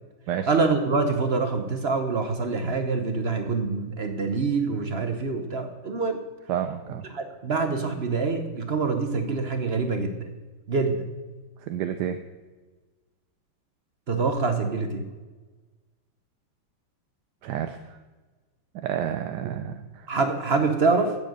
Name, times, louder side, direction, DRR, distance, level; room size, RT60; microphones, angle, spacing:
voice 1, 0.5-6.2 7.1-10.2 10.7-11.1 14.1-15.0 19.4-19.5 20.1-21.2, right 4 dB, 45° right, 7 dB, 0.9 m, -25 dB
voice 2, 6.5-7.0 11.6-12.2 17.4-17.8 18.7-20.1, right 10 dB, 70° right, 8 dB, 1.1 m, -30 dB
9.4 x 7.8 x 8.0 m, 1.3 s
omnidirectional pair, 2.1 m